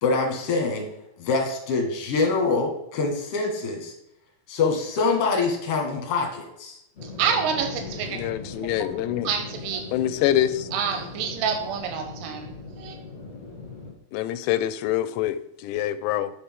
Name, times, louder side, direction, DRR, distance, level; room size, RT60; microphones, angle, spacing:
voice 1, 0.0-0.9 1.2-3.9 4.5-6.8, left 4 dB, 50° left, 1 dB, 1.9 m, -25 dB
sound 1, 6.9-13.9, left 3 dB, 20° left, 1.8 m, -39 dB
voice 2, 7.0-8.2 9.2-9.8 10.7-13.0, right 7 dB, 90° right, 5 dB, 3.0 m, -28 dB
voice 3, 8.1-9.3 9.9-10.7 14.1-16.3, left 12 dB, 85° left, 13 dB, 2.7 m, -25 dB
8.3 x 5.8 x 3.6 m, 0.81 s
omnidirectional pair, 4.9 m